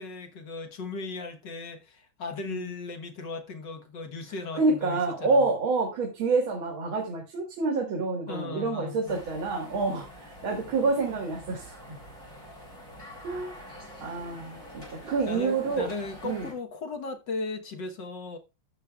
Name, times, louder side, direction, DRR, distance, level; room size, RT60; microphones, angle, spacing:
voice 1, 0.0-5.5 8.3-9.2 13.6-13.7 15.0-18.4, left 3 dB, 60° left, 1.9 m, -37 dB
voice 2, 4.5-10.1 10.4-12.0 13.2-15.9 16.2-16.5, right 3 dB, 80° right, 2.6 m, -28 dB
sound 1, 9.1-16.5, equal, 15° left, 3.8 m, -46 dB
14.0 x 8.3 x 2.4 m
omnidirectional pair, 2.2 m